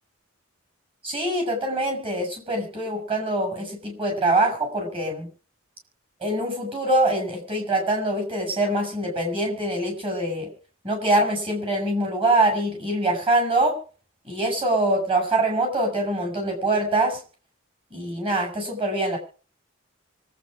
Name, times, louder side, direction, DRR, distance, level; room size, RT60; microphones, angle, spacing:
voice 1, 1.0-5.3 6.2-10.5 10.8-13.8 14.2-17.2 17.9-19.2, right 1 dB, 25° right, 3 dB, 6.6 m, -24 dB
25.0 x 8.7 x 5.0 m, 0.41 s
head